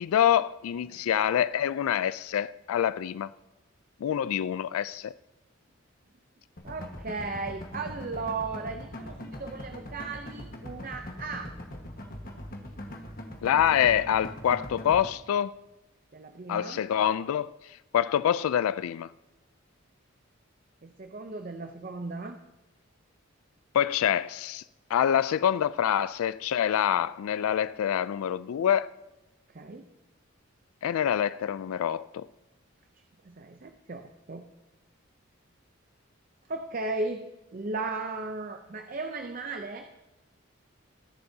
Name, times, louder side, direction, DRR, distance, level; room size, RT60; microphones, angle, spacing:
voice 1, 0.0-3.3 4.0-5.1 13.4-15.5 16.5-17.5 17.9-19.1 23.7-24.6 24.9-28.9 30.8-32.3, left 9 dB, 85° left, 0.3 m, -26 dB
sound 1, 6.6-15.1, left 1 dB, 45° left, 1.4 m, -41 dB
voice 2, 6.6-11.5 16.1-16.8 20.8-22.4 29.5-29.9 33.2-34.4 36.5-37.2 37.5-39.9, right 3 dB, 40° right, 0.6 m, -36 dB
21.5 x 11.5 x 2.8 m
head